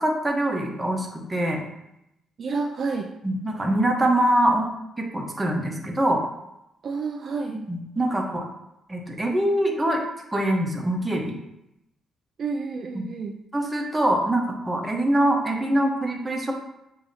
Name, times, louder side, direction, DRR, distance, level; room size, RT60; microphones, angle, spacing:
voice 1, 0.0-1.6 3.2-4.7 5.0-6.2 7.7-8.5 8.9-10.0 10.3-11.3 13.0-13.1 13.5-16.5, right 1 dB, 15° right, 1 dB, 1.0 m, -24 dB
voice 2, 2.4-3.1 6.8-7.6 12.4-13.4, right 4 dB, 50° right, 2 dB, 0.4 m, -29 dB
6.9 x 2.8 x 2.7 m, 0.85 s
cardioid pair, 90°, 0 cm